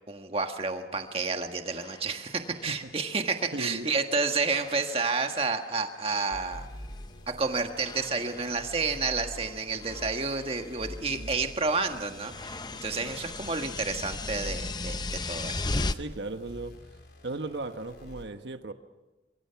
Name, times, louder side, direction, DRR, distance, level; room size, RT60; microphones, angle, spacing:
voice 1, 0.1-6.7 7.4-15.8, right 4 dB, 30° right, 5 dB, 1.6 m, -30 dB
sound 1, 1.1-1.2 1.6-4.1 4.3-5.6 5.9-7.1 7.8-15.9, left 3 dB, 25° left, 0.7 m, -39 dB
voice 2, 3.5-3.9 11.1-11.4 13.0-13.1 15.9-16.7 17.2-18.7, right 2 dB, 80° right, 8 dB, 1.2 m, -37 dB
sound 2, 6.3-18.2, equal, 65° left, 4.2 m, -45 dB
25.5 x 23.0 x 5.9 m, 1.1 s
head